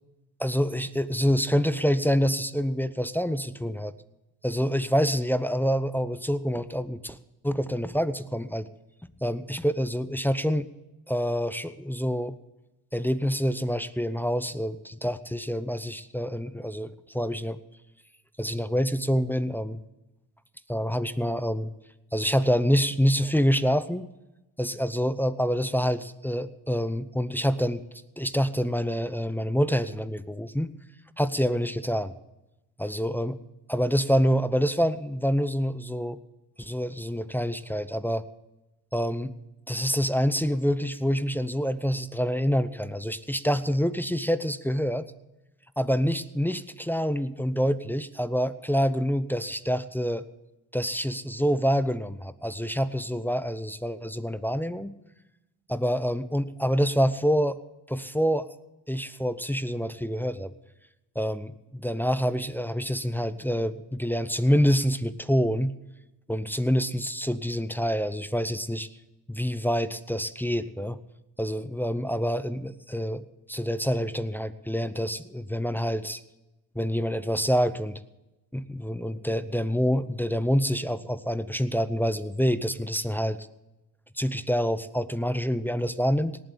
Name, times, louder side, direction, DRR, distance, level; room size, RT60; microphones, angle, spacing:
voice 1, 0.4-3.9 4.4-7.2 7.4-8.7 9.2-10.7 11.1-12.3 12.9-16.9 17.1-17.6 18.4-19.8 20.7-21.7 22.1-24.1 24.6-27.8 28.2-30.7 31.2-32.1 32.8-33.3 33.7-36.2 36.6-38.3 38.9-39.3 39.7-45.1 45.8-50.2 50.7-54.9 55.7-57.6 57.9-58.5 58.9-60.5 61.2-65.7 66.3-68.9 69.3-71.0 71.4-76.2 76.8-78.0 78.5-83.5 84.2-86.4, equal, 5° left, 13 dB, 0.7 m, -26 dB
18.5 x 7.8 x 7.3 m, 1.0 s
supercardioid pair, 65°, 43 cm